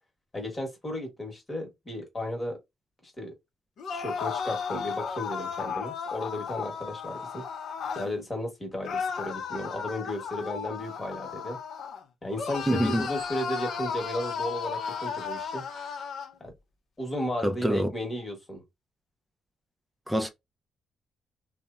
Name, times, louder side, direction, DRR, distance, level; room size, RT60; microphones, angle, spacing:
voice 1, 0.3-2.6 3.0-3.3 3.9-7.4 7.9-11.6 12.2-15.6 16.4-16.5 17.0-18.6, left 1 dB, 20° left, 1.1 m, -34 dB
sound 1, 3.8-8.1 8.8-12.0 12.4-16.3, left 6 dB, 70° left, 0.6 m, -34 dB
voice 2, 12.7-13.1 17.4-17.9 20.1-20.3, equal, 5° right, 0.4 m, -25 dB
3.0 x 2.0 x 2.4 m
cardioid pair, 105°, 0 cm